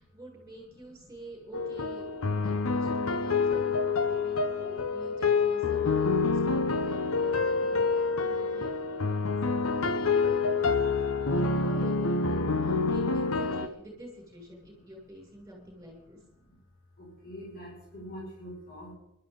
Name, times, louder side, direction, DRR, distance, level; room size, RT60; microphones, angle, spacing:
voice 1, 0.0-9.8 11.0-16.2, right 1 dB, 15° right, -2 dB, 7.1 m, -48 dB
sound 1, 1.5-13.7, left 4 dB, 80° left, 0.9 m, -27 dB
voice 2, 9.1-9.6 16.4-16.6 17.0-18.9, equal, 45° left, -5 dB, 5.5 m, -47 dB
21.5 x 12.5 x 3.9 m, 0.90 s
head